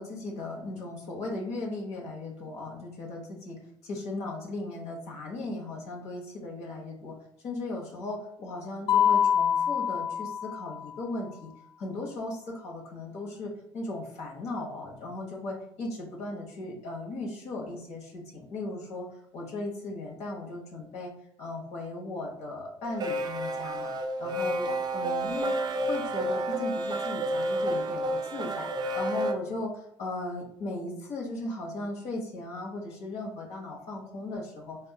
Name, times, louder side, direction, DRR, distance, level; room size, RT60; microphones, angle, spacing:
voice 1, 0.0-7.2 7.4-11.5 11.8-19.1 19.3-21.1 21.4-23.9 24.2-25.5 25.9-28.7 28.9-34.8, left 2 dB, 55° left, -1 dB, 1.0 m, -37 dB
Mallet percussion, 8.9-10.9, left 8 dB, 40° left, 0.4 m, -25 dB
sound 1, 22.8-29.3, right 1 dB, 30° right, 0.5 m, -30 dB
3.5 x 2.3 x 2.3 m, 0.69 s
hypercardioid pair, 70°, 13 cm